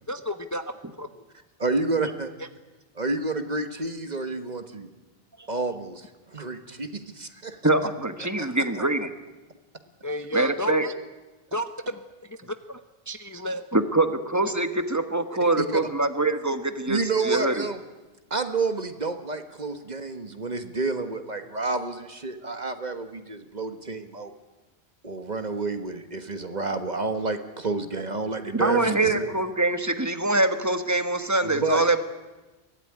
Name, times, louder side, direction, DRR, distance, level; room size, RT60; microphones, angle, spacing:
voice 1, 0.1-1.2 10.0-10.9 11.5-12.0 12.3-12.8 13.1-13.7, equal, 20° left, 9 dB, 0.8 m, -32 dB
voice 2, 1.6-2.3 2.9-4.9 5.5-7.6 8.7-8.8 15.6-15.8 16.9-17.8 18.3-24.3 25.0-29.3 31.4-31.8, right 3 dB, 45° right, 8 dB, 1.6 m, -29 dB
voice 3, 7.6-9.1 10.3-10.9 13.7-17.6 28.5-32.0, right 2 dB, 15° right, 9 dB, 1.4 m, -24 dB
23.0 x 17.0 x 10.0 m, 1.2 s
omnidirectional pair, 1.0 m